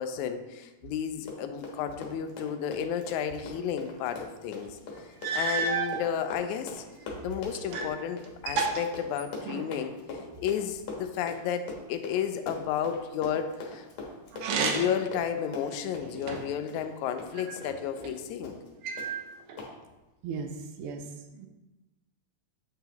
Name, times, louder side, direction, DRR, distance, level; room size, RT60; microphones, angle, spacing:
voice 1, 0.0-4.8 5.3-6.8 7.2-9.9 10.4-13.9 14.5-18.6, left 8 dB, 85° left, 8 dB, 2.0 m, -32 dB
Run, 1.1-17.7 18.0-18.1 18.4-18.7 19.0-19.1 19.6-19.7, left 3 dB, 70° left, 2.5 m, -42 dB
sound 1, 4.6-4.7 5.2-6.0 6.8-8.0 8.2-9.8 14.3-15.1 15.6-16.6 17.4-18.2 18.8-19.6, right 4 dB, 70° right, 1.4 m, -32 dB
voice 2, 20.2-20.5 20.8-21.0 21.3-21.5, right 5 dB, 90° right, 5 dB, 1.2 m, -36 dB
9.1 x 5.6 x 2.9 m, 1.1 s
omnidirectional pair, 3.3 m